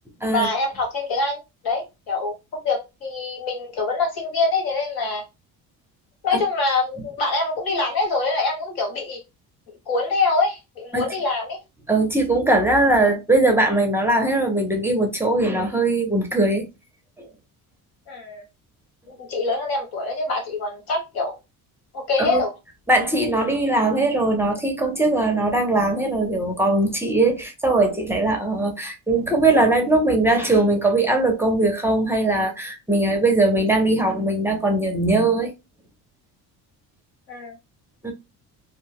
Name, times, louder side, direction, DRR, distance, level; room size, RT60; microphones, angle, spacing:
voice 1, 0.3-1.4 1.6-5.2 6.2-9.2 9.9-11.6 18.1-18.4 19.1-21.3 21.9-22.5 37.3-37.5, left 3 dB, 75° left, 1.5 m, -24 dB
voice 2, 11.9-16.7 17.2-17.3 22.2-22.4 22.9-35.5 38.0-38.1, right 2 dB, 5° right, 0.5 m, -20 dB
2.5 x 2.1 x 3.3 m
cardioid pair, 150°, 37 cm